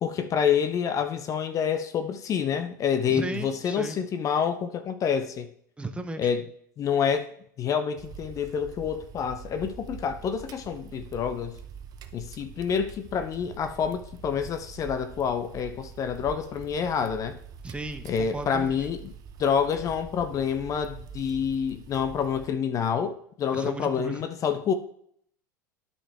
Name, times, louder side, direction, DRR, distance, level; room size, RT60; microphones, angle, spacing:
voice 1, 0.0-5.5 6.2-6.4 6.8-7.3 7.6-11.6 12.1-17.4 18.0-19.1 19.4-24.7, left 7 dB, 30° left, 0.6 m, -27 dB
voice 2, 3.1-4.0 5.8-6.3 17.6-18.8 23.5-24.2, right 2 dB, 10° right, 0.9 m, -35 dB
sound 1, 8.0-22.5, right 7 dB, 35° right, 0.7 m, -44 dB
12.0 x 5.4 x 3.5 m
figure-of-eight pair, 80°, 10 cm